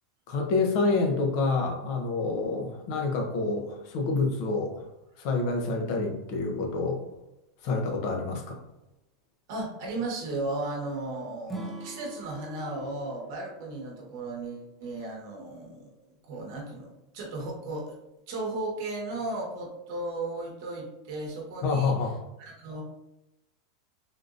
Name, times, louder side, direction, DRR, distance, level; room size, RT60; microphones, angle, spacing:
voice 1, 0.3-4.8 5.2-7.0 7.6-8.6 21.6-22.2, left 3 dB, 40° left, 2 dB, 0.6 m, -27 dB
voice 2, 9.5-15.9 16.2-18.0 18.3-21.9 22.4-22.8, right 2 dB, 50° right, -1 dB, 1.0 m, -35 dB
Acoustic guitar / Strum, 11.5-14.7, right 2 dB, ahead, 0.4 m, -43 dB
3.5 x 2.6 x 2.5 m, 0.92 s
supercardioid pair, 175°, 2 cm